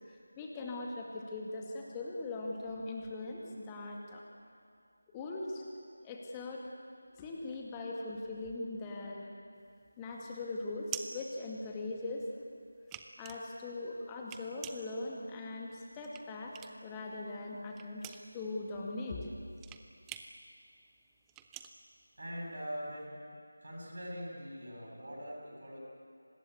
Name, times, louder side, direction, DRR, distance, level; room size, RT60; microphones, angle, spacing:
voice 1, 0.1-4.2 5.1-5.6 6.0-6.7 7.1-9.3 10.0-12.3 13.2-16.5 16.8-19.3, left 2 dB, 10° left, -1 dB, 2.2 m, -40 dB
sound 1, 9.6-12.2 12.5-17.0 17.3-22.8, right 10 dB, 10° right, 0.6 m, -47 dB
voice 2, 22.2-23.2 23.6-25.8, equal, 55° right, -2 dB, 7.7 m, -42 dB
24.5 x 20.0 x 8.3 m, 2.3 s
figure-of-eight pair, 165°, 0 cm